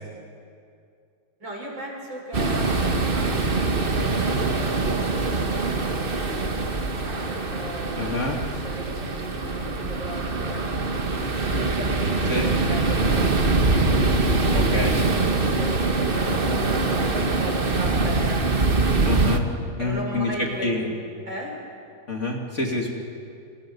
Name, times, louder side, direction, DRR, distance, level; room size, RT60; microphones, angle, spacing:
voice 1, 1.4-5.0 7.0-10.6 11.4-14.5 14.9-18.5 19.8-20.9 21.3-21.5, right 1 dB, 60° right, -1 dB, 6.6 m, -37 dB
sound 1, 2.3-19.4, right 3 dB, 30° right, 1.3 m, -23 dB
voice 2, 8.0-8.4 12.3-12.4 14.5-15.0 19.0-19.4 19.8-20.8 22.1-22.9, left 2 dB, 35° left, 0 dB, 2.8 m, -27 dB
29.0 x 28.5 x 5.5 m, 2.4 s
omnidirectional pair, 2.3 m